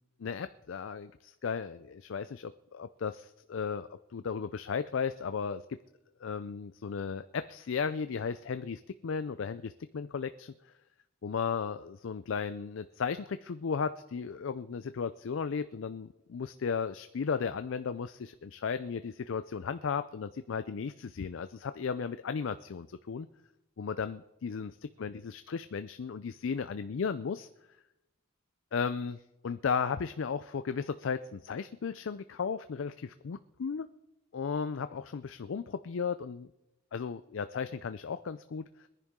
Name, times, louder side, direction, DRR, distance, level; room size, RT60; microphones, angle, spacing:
voice 1, 0.2-5.6 6.2-10.5 11.2-23.3 23.8-27.5 28.7-33.9 34.3-36.5 36.9-38.9, left 6 dB, 65° left, 12 dB, 0.4 m, -35 dB
21.5 x 10.5 x 3.7 m, 0.92 s
head